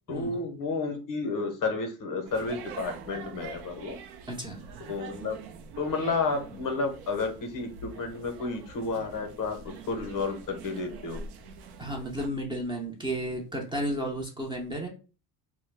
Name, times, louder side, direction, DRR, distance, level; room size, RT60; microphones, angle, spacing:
voice 1, 0.1-4.0 4.9-5.4 5.8-11.2, left 3 dB, 40° left, 5 dB, 0.7 m, -31 dB
sound 1, 2.2-12.3, right 5 dB, 55° right, 0.5 m, -45 dB
voice 2, 4.3-4.6 11.8-14.9, right 1 dB, 10° right, 0 dB, 0.6 m, -33 dB
2.1 x 2.1 x 3.3 m, 0.33 s
supercardioid pair, 85°, 47 cm